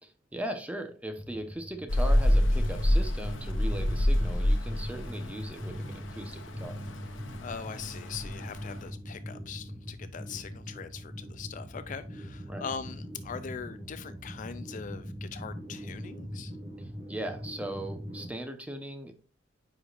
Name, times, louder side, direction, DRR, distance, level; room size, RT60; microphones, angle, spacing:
voice 1, 0.0-6.8 12.5-12.7 16.8-19.1, right 1 dB, 5° right, 0.9 m, -39 dB
sound 1, 1.1-18.3, equal, 45° right, 2.3 m, -41 dB
Rain, 1.9-8.9, left 1 dB, 85° left, 1.0 m, -28 dB
voice 2, 7.4-16.6, left 6 dB, 40° left, 0.4 m, -41 dB
9.5 x 5.0 x 2.5 m
head